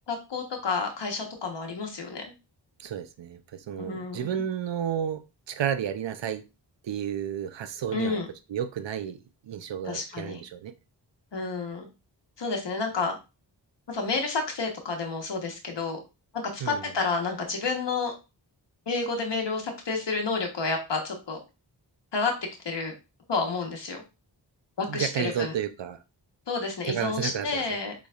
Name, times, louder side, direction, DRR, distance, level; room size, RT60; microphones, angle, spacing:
voice 1, 0.1-2.2 3.8-4.3 7.9-8.3 9.8-10.4 11.3-11.9 12.4-13.1 13.9-16.0 16.3-18.1 18.9-21.4 22.1-22.9 23.3-24.0 24.8-25.5 26.5-27.9, left 4 dB, 75° left, 1.2 m, -30 dB
voice 2, 2.8-6.5 6.8-8.2 8.5-9.2 9.5-10.7 16.6-16.8 24.9-26.0 26.8-27.6, right 9 dB, 85° right, 0.6 m, -32 dB
6.8 x 3.1 x 2.4 m
wide cardioid pair, 85°, 43 cm